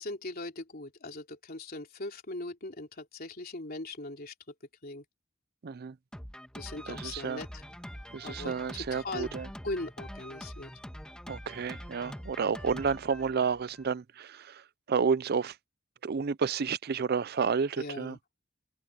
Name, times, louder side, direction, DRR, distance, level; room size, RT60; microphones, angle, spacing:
voice 1, 0.0-4.3 4.8-5.0 6.5-7.6 8.2-9.3 9.6-10.7 17.8-18.2, left 2 dB, 50° left, 3.4 m, -40 dB
voice 2, 5.6-5.9 6.9-7.4 8.1-9.5 11.3-14.6 14.9-15.5 16.0-18.2, right 6 dB, 50° right, 0.5 m, -31 dB
Drum kit, 6.1-13.9, equal, 5° left, 1.4 m, -44 dB
head